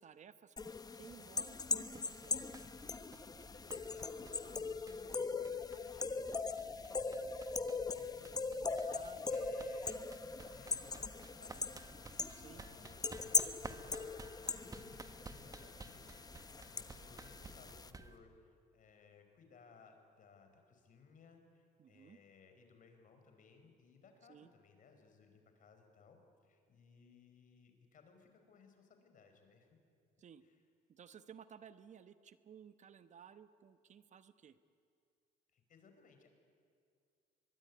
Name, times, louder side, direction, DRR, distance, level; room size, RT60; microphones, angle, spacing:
voice 1, 0.0-2.4 8.8-9.5 12.4-12.6 21.8-22.2 24.3-24.5 30.2-30.4 30.9-34.6, right 8 dB, 45° right, 12 dB, 1.0 m, -57 dB
sound 1, 0.6-17.9, left 4 dB, 20° left, 1.0 m, -40 dB
sound 2, 1.5-18.2, right 3 dB, 20° right, 1.4 m, -55 dB
voice 2, 3.3-10.0 10.3-11.9 12.3-14.3 14.6-29.7 30.4-30.6 35.5-36.3, left 5 dB, 50° left, 6 dB, 5.0 m, -63 dB
24.0 x 22.0 x 9.7 m, 2.2 s
cardioid pair, 110°, 17 cm